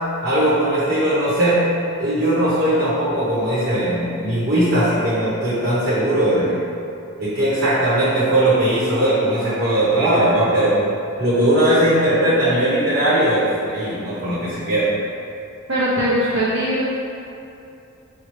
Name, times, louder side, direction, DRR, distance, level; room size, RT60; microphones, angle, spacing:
voice 1, 0.2-1.6 2.0-6.6 7.2-10.8 11.2-14.9, right 1 dB, 55° right, -12 dB, 1.1 m, -19 dB
voice 2, 15.7-16.8, equal, 90° right, -10 dB, 0.8 m, -20 dB
5.7 x 2.3 x 3.1 m, 2.7 s
head